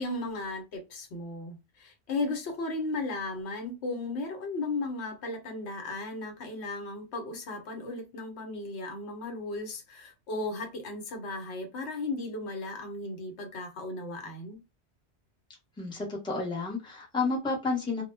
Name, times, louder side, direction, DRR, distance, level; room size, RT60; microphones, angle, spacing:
voice 1, 0.0-14.6, left 2 dB, 80° left, 1.0 m, -35 dB
voice 2, 15.8-18.0, left 3 dB, 5° left, 0.6 m, -31 dB
2.1 x 2.1 x 3.2 m
omnidirectional pair, 1.1 m